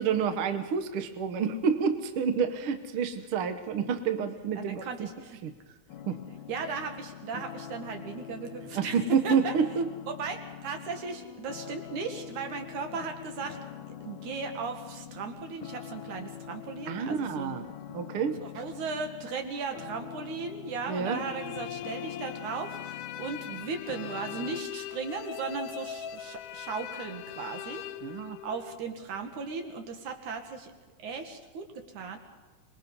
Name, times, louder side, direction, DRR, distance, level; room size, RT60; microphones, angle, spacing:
voice 1, 0.0-5.1 5.4-5.5 6.1-6.2 8.7-9.8 16.9-17.6 17.9-18.4 20.9-21.2 28.0-28.4, right 6 dB, 55° right, 8 dB, 1.7 m, -28 dB
voice 2, 4.6-5.4 6.5-9.0 9.2-9.5 10.1-13.6 14.0-17.7 18.4-27.8 28.4-30.7 31.0-32.2, right 5 dB, 75° right, 5 dB, 3.3 m, -37 dB
sound 1, 5.9-24.6, left 10 dB, 70° left, 2.0 m, -44 dB
sound 2, 21.0-28.8, left 11 dB, 85° left, 2.3 m, -41 dB
25.0 x 21.0 x 5.4 m, 1.2 s
omnidirectional pair, 3.5 m